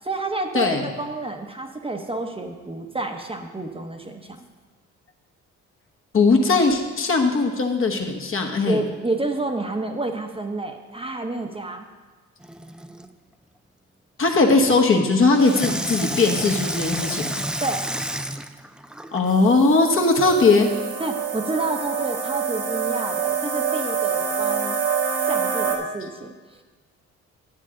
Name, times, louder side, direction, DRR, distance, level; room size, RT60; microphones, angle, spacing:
voice 1, 0.0-4.4 8.6-11.9 17.6-17.8 21.0-24.8 25.2-26.6, right 2 dB, 20° right, 3 dB, 0.8 m, -29 dB
voice 2, 6.1-8.8 14.2-17.3 19.1-20.7, left 3 dB, 45° left, 2 dB, 1.2 m, -19 dB
Water tap faucet / Sink (filling or washing), 12.4-13.1 15.4-19.3 20.0-20.1, right 1 dB, 5° right, 0.3 m, -30 dB
sound 1, 19.3-25.8, right 6 dB, 85° right, 1.8 m, -26 dB
10.0 x 8.2 x 3.8 m, 1.3 s
cardioid pair, 90°, 30 cm